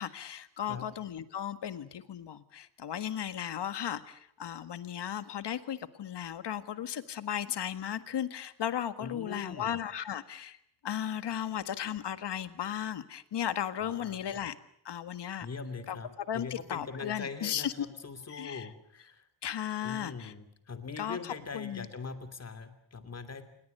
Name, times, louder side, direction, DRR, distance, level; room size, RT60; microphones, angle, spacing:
voice 1, 0.0-10.6 10.8-14.5 14.8-15.5 15.9-16.0 16.3-17.9 18.3-18.7 19.4-20.3 21.0-21.9, left 10 dB, 70° left, 12 dB, 1.7 m, -35 dB
voice 2, 9.0-9.8 13.8-14.4 15.4-19.3 19.8-23.4, left 4 dB, 35° left, 10 dB, 2.8 m, -42 dB
28.0 x 21.5 x 6.7 m, 0.70 s
wide cardioid pair, 175°, 42 cm